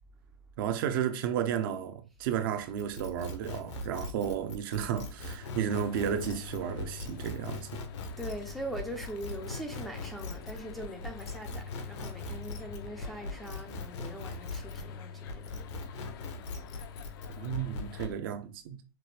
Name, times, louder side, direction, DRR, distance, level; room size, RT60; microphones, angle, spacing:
voice 1, 0.6-7.8 17.4-18.8, right 9 dB, 50° right, 0.6 m, -33 dB
sound 1, 2.8-14.9 15.3-18.1, left 2 dB, 75° left, 1.1 m, -40 dB
sound 2, 5.4-18.2, left 7 dB, 50° left, 0.5 m, -46 dB
voice 2, 8.2-15.6, right 1 dB, ahead, 0.5 m, -41 dB
5.9 x 2.2 x 3.2 m
hypercardioid pair, 150°, 15 cm